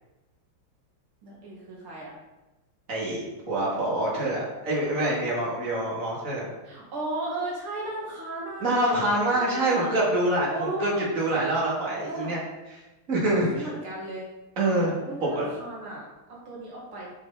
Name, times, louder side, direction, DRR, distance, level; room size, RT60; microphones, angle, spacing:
voice 1, 1.2-2.1 6.6-8.8 9.4-9.9 10.5-11.1 12.0-12.3 13.5-14.3 14.8-17.1, right 1 dB, 75° right, -4 dB, 2.8 m, -35 dB
voice 2, 2.9-6.5 8.6-12.4 13.1-13.7 14.6-14.9 15.2-15.5, right 1 dB, 35° right, -6 dB, 2.9 m, -26 dB
12.0 x 5.5 x 4.0 m, 1.1 s
omnidirectional pair, 2.4 m